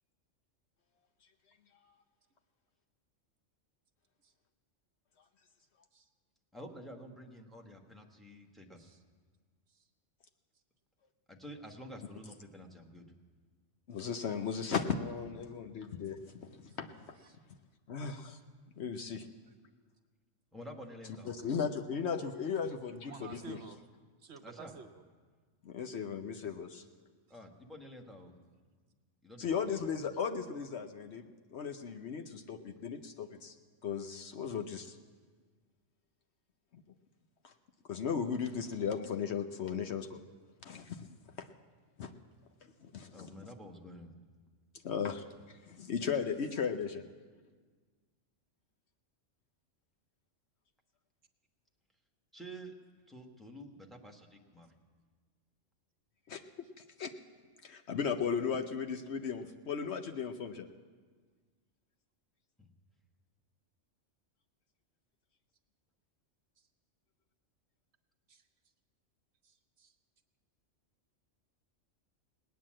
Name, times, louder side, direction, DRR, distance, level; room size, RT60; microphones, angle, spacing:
voice 1, 6.5-8.9 11.3-13.1 20.5-21.4 24.4-24.7 27.3-28.3 29.2-29.9 34.1-34.2 43.1-44.1 52.3-52.7 53.1-54.7 62.6-62.7, equal, ahead, 1 dB, 1.2 m, -49 dB
voice 2, 13.9-16.9 17.9-18.4 18.8-19.3 21.3-23.6 25.6-26.8 29.4-33.5 33.8-35.0 37.4-37.5 37.9-40.2 40.6-41.1 41.4-41.5 42.0-42.1 42.9-43.3 44.8-45.2 45.7-47.0 56.3-56.4 57.0-57.1 57.6-60.7, left 6 dB, 60° left, 6 dB, 1.0 m, -36 dB
voice 3, 23.0-23.8 24.2-25.0 46.6-46.7 66.6-66.7 68.3-68.4 69.4-69.9, right 6 dB, 60° right, 6 dB, 1.0 m, -52 dB
18.5 x 9.4 x 7.5 m, 1.5 s
omnidirectional pair, 1.3 m